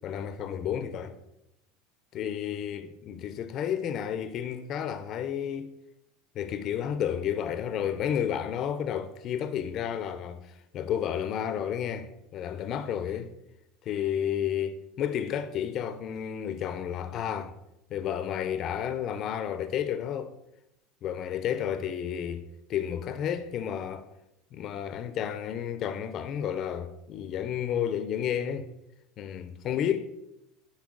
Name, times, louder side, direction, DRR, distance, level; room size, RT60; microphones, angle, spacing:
voice 1, 0.0-1.2 2.1-5.7 6.4-13.3 13.9-17.5 17.9-20.3 21.0-22.4 22.7-24.1 24.5-28.7 29.2-30.2, left 9 dB, 35° left, 0.4 m, -31 dB
9.4 x 4.3 x 3.7 m
supercardioid pair, 155°, 0 cm